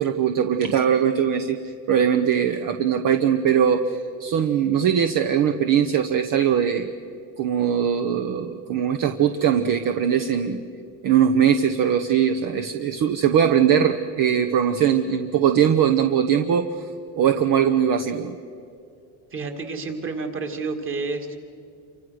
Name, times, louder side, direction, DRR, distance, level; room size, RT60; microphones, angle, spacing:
voice 1, 0.0-6.9 7.4-10.6 11.0-16.9 17.2-18.3, right 8 dB, 50° right, 7 dB, 1.1 m, -21 dB
voice 2, 19.3-21.4, right 3 dB, 30° right, 5 dB, 2.5 m, -30 dB
28.5 x 25.0 x 6.5 m, 2.5 s
cardioid pair, 155°, 41 cm